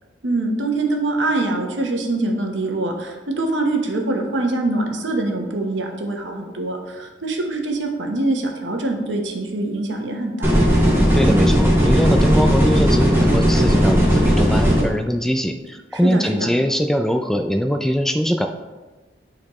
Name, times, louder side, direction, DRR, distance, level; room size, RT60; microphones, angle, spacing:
voice 1, 0.2-10.6 15.9-16.5, right 2 dB, 90° right, 2 dB, 1.1 m, -24 dB
sound 1, 10.4-14.8, equal, 15° right, 2.1 m, -16 dB
voice 2, 11.1-18.5, equal, ahead, 5 dB, 0.3 m, -21 dB
11.5 x 4.1 x 3.1 m, 1.2 s
head